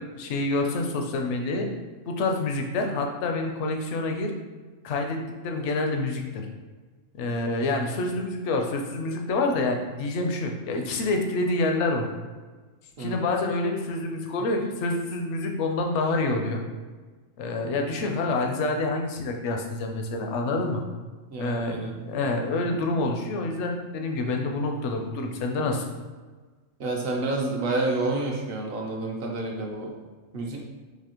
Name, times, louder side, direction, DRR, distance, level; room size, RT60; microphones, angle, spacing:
voice 1, 0.0-1.7 2.1-4.3 4.8-6.5 7.1-12.1 13.0-16.6 17.4-20.8 21.4-25.8, left 2 dB, 70° left, 3 dB, 0.8 m, -27 dB
voice 2, 21.3-21.9 22.7-22.8 26.8-29.9 30.3-30.6, right 2 dB, 55° right, -1 dB, 0.7 m, -29 dB
4.0 x 2.7 x 2.9 m, 1.4 s
omnidirectional pair, 1.3 m